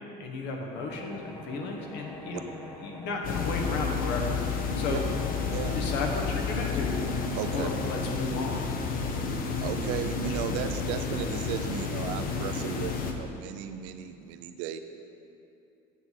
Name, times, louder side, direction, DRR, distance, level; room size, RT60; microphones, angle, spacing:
voice 1, 0.2-2.5 2.8-4.3 4.8-5.0 5.7-7.1 7.5-8.6, left 3 dB, 70° left, 1 dB, 1.3 m, -33 dB
sound 1, 0.7-8.1, left 2 dB, 10° left, 1.0 m, -44 dB
sound 2, 3.2-13.1, left 5 dB, 50° left, 0.8 m, -31 dB
voice 2, 7.3-7.7 9.6-14.8, right 9 dB, 90° right, 8 dB, 0.6 m, -35 dB
8.9 x 7.4 x 4.0 m, 2.7 s
cardioid pair, 120°, 19 cm